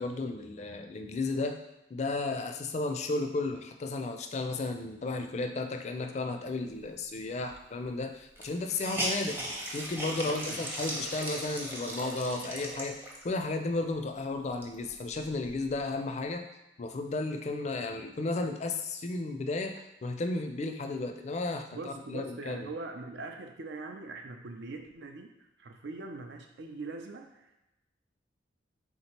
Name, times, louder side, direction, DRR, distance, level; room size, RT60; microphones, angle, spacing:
voice 1, 0.0-1.6 1.9-9.4 9.7-16.4 16.8-22.7, left 3 dB, 40° left, 6 dB, 0.4 m, -34 dB
Hiss, 7.5-7.6 7.8-7.9 8.3-13.4 13.9-14.0 14.4-15.8, right 1 dB, 10° right, 0.6 m, -37 dB
voice 2, 10.2-10.6 21.7-25.3 25.6-27.6, right 3 dB, 75° right, 4 dB, 0.5 m, -42 dB
3.5 x 2.9 x 4.4 m, 0.93 s
head